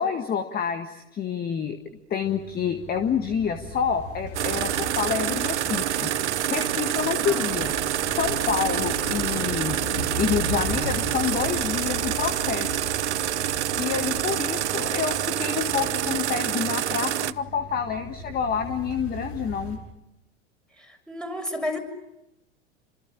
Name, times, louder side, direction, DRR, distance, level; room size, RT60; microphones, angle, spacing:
voice 1, 0.0-1.8 2.1-9.8 10.2-12.9 13.8-19.8, left 7 dB, 25° left, 8 dB, 1.8 m, -28 dB
sound 1, 2.2-19.8, left 1 dB, 65° left, 5.6 m, -38 dB
sound 2, 2.2-19.9, right 4 dB, 30° right, 2.8 m, -46 dB
sound 3, 4.3-17.3, right 12 dB, 75° right, 0.9 m, -27 dB
voice 2, 7.2-7.6 14.7-15.0 20.8-21.8, left 1 dB, ahead, 3 dB, 6.7 m, -33 dB
28.5 x 26.0 x 7.3 m, 0.90 s
hypercardioid pair, 95°, 35 cm